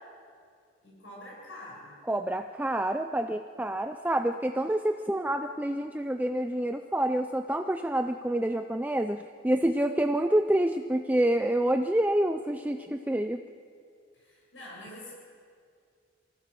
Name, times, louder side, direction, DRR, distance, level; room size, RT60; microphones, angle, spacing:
voice 1, 0.8-1.9 14.1-15.1, left 1 dB, 75° left, -4 dB, 7.2 m, -45 dB
voice 2, 2.1-13.4, right 1 dB, 10° right, 6 dB, 0.4 m, -27 dB
23.5 x 16.0 x 6.9 m, 2.3 s
head